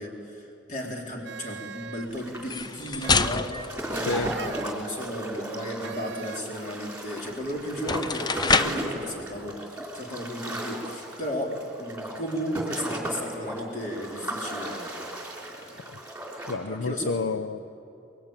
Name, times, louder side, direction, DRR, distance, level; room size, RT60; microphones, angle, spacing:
voice 1, 0.0-14.9 15.5-15.9 16.7-17.1, equal, 40° left, -1 dB, 4.0 m, -34 dB
sound 1, 1.2-2.2 3.0-3.5 4.2-4.8 5.8-6.6, right 6 dB, 65° right, 0.7 m, -41 dB
sound 2, 2.1-16.6, right 1 dB, 10° right, 3.4 m, -36 dB
sound 3, 2.4-4.8 7.2-7.3 7.7-8.9, left 4 dB, 20° left, 0.5 m, -27 dB
voice 2, 4.0-4.3 15.9-16.0 16.5-17.7, left 3 dB, 85° left, 11 dB, 0.6 m, -30 dB
24.0 x 22.0 x 8.9 m, 2.8 s
head